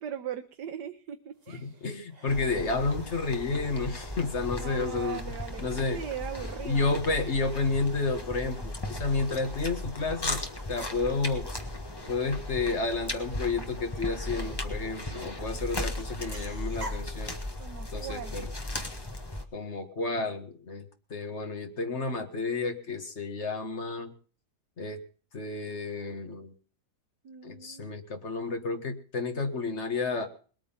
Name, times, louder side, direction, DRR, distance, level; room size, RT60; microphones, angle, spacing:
voice 1, 0.0-1.7 4.6-5.7 5.9-7.0 17.6-18.5 27.2-28.0, right 9 dB, 90° right, 6 dB, 1.6 m, -39 dB
sound 1, 1.3-19.4, right 1 dB, 35° right, 2.6 m, -54 dB
voice 2, 1.5-5.2 5.6-6.0 6.6-10.4 10.7-11.5 12.1-17.4 17.9-18.5 19.5-20.9 21.1-24.1 24.8-25.0 25.3-26.5 27.4-30.3, left 3 dB, 45° left, 6 dB, 2.0 m, -31 dB
sound 2, 2.3-19.4, left 1 dB, 15° left, 1.5 m, -37 dB
20.5 x 9.1 x 5.7 m, 0.41 s
omnidirectional pair, 1.7 m